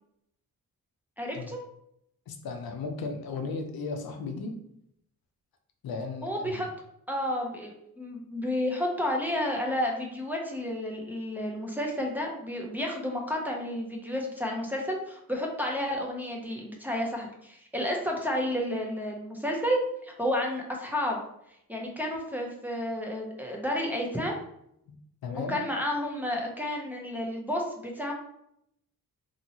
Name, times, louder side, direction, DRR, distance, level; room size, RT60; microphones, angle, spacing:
voice 1, 1.2-1.6 6.2-6.7 7.1-21.2 21.7-24.4 25.5-28.1, left 1 dB, 5° right, -2 dB, 0.5 m, -31 dB
voice 2, 2.3-4.6 5.8-6.6 24.9-25.0 25.2-25.6, left 4 dB, 90° left, 4 dB, 0.6 m, -35 dB
2.8 x 2.7 x 2.8 m, 0.75 s
cardioid pair, 105°, 35 cm